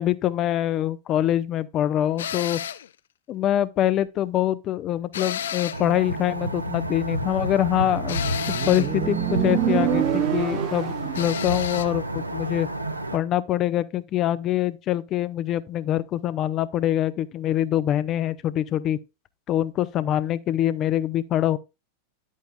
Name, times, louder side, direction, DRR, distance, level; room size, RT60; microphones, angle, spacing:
voice 1, 0.0-2.6 3.3-8.2 8.7-12.7 13.1-19.0 19.5-21.6, left 12 dB, 35° left, 0.7 m, -24 dB
sound 1, 2.2-2.9 5.1-5.9 8.1-8.9 11.1-11.9, left 9 dB, 60° left, 0.4 m, -32 dB
sound 2, 5.7-13.2, right 1 dB, 85° right, 0.9 m, -30 dB
Motorcycle, 7.8-11.3, right 13 dB, 35° right, 0.5 m, -26 dB
10.0 x 8.4 x 2.2 m
figure-of-eight pair, 90°, 0 cm